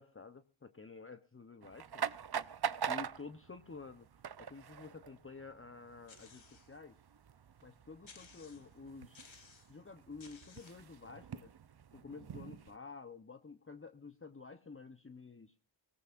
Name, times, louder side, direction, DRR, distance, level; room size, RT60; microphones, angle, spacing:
voice 1, 0.0-2.1 2.9-4.1 4.4-7.0 7.6-9.2 9.7-11.5 11.9-15.5, left 4 dB, 30° left, 9 dB, 0.9 m, -51 dB
sound 1, 1.6-12.8, right 8 dB, 55° right, 0.7 m, -44 dB
sound 2, 6.1-6.8 7.3-7.4 8.0-8.8 9.1-9.8 10.2-10.9, left 5 dB, 80° left, 1.7 m, -58 dB
24.0 x 18.0 x 2.5 m, 0.33 s
wide cardioid pair, 55°, 46 cm